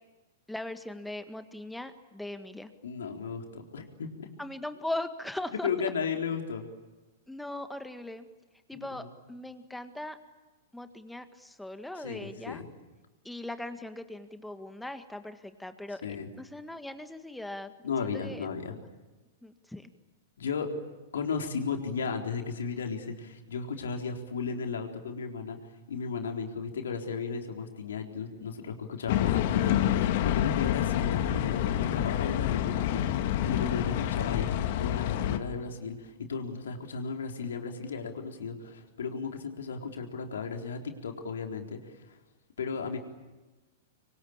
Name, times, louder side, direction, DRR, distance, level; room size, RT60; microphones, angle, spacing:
voice 1, 0.5-2.7 4.4-5.7 7.3-8.3 8.7-10.2 10.7-12.6 13.2-16.0 16.4-18.5 19.4-19.9, left 1 dB, 5° left, 9 dB, 1.7 m, -39 dB
voice 2, 2.8-4.3 5.6-6.6 8.7-9.1 12.0-12.7 16.0-16.3 17.8-18.7 20.4-20.7 21.1-25.6 25.9-42.0 42.6-43.0, left 5 dB, 70° left, 3 dB, 3.9 m, -35 dB
sound 1, 29.1-35.4, left 11 dB, 55° left, 2.1 m, -27 dB
25.5 x 24.0 x 8.9 m, 1.2 s
figure-of-eight pair, 105°, 0 cm